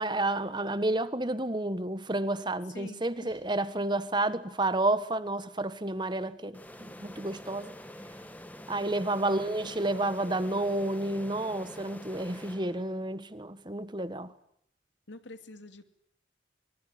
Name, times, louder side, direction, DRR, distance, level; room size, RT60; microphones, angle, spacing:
voice 1, 0.0-7.7 8.7-14.3, right 2 dB, 25° right, 1.4 m, -30 dB
voice 2, 2.7-3.5 9.2-10.0 15.1-15.8, left 2 dB, 85° left, 2.5 m, -48 dB
sound 1, 6.5-13.2, left 1 dB, 10° left, 1.8 m, -46 dB
24.5 x 23.5 x 9.0 m
head